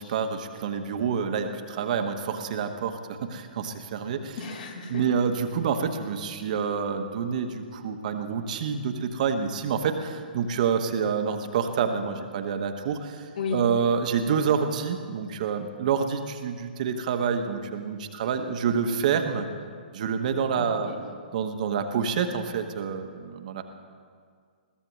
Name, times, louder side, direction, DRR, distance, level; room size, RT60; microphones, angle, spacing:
voice 1, 0.0-4.4 4.9-19.5 19.9-20.9 21.3-23.6, right 6 dB, 50° right, 6 dB, 1.1 m, -27 dB
voice 2, 4.4-5.0 13.4-13.6 20.6-21.0, left 5 dB, 60° left, -1 dB, 4.0 m, -33 dB
21.5 x 15.5 x 3.1 m, 2.1 s
figure-of-eight pair, 120°, 5 cm